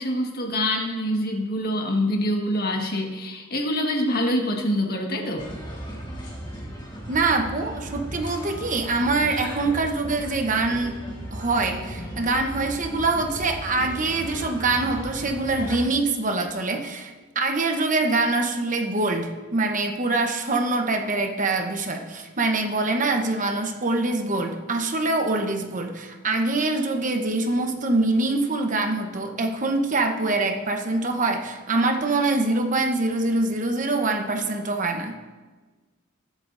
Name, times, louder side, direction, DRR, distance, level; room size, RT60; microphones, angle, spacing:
voice 1, 0.0-5.5, left 1 dB, 45° left, 1 dB, 1.5 m, -25 dB
sound 1, 5.4-15.8, equal, 20° left, 1.8 m, -36 dB
voice 2, 7.1-11.0 11.3-35.2, right 2 dB, 40° right, 4 dB, 0.9 m, -24 dB
21.5 x 8.2 x 2.6 m, 1.3 s
head